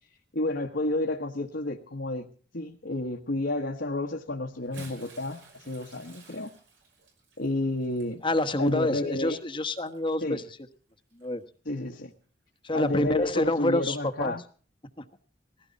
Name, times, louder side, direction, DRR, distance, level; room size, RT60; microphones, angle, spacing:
voice 1, 0.3-2.3 2.5-6.5 7.4-8.2 8.6-9.4 10.2-10.4 11.6-12.1 12.7-14.4, left 2 dB, 65° left, 1.4 m, -31 dB
Bathtub (filling or washing) / Splash splatter, 4.5-10.2 11.1-11.3 12.7-12.8, right 3 dB, 70° right, 5.6 m, -53 dB
voice 2, 8.2-10.4 11.2-11.4 12.6-14.3 15.0-15.1, left 1 dB, 30° left, 1.2 m, -27 dB
20.0 x 16.0 x 4.1 m
head